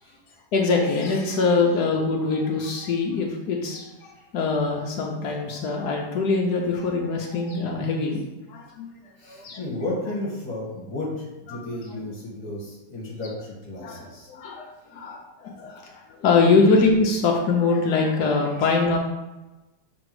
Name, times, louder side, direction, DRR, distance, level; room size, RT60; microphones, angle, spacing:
voice 1, 0.5-8.2 8.5-8.9 9.2-9.6 11.7-11.8 13.8-19.0, left 4 dB, 80° left, 0 dB, 1.3 m, -23 dB
voice 2, 9.2-14.3 14.8-15.1, left 1 dB, 25° left, -4 dB, 1.8 m, -33 dB
6.1 x 3.5 x 4.7 m, 1.0 s
omnidirectional pair, 1.7 m